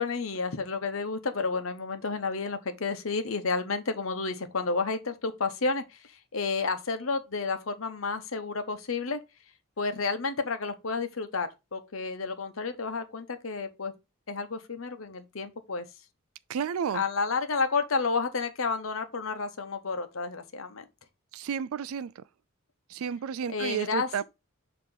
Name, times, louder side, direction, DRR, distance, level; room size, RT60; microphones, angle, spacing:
voice 1, 0.0-6.0 6.3-9.2 9.8-13.9 14.3-15.9 16.9-20.8 23.5-24.2, left 4 dB, 75° left, 0.9 m, -31 dB
voice 2, 16.5-17.0 21.3-22.1 22.9-24.2, right 7 dB, 90° right, 0.4 m, -31 dB
6.9 x 3.0 x 5.4 m
head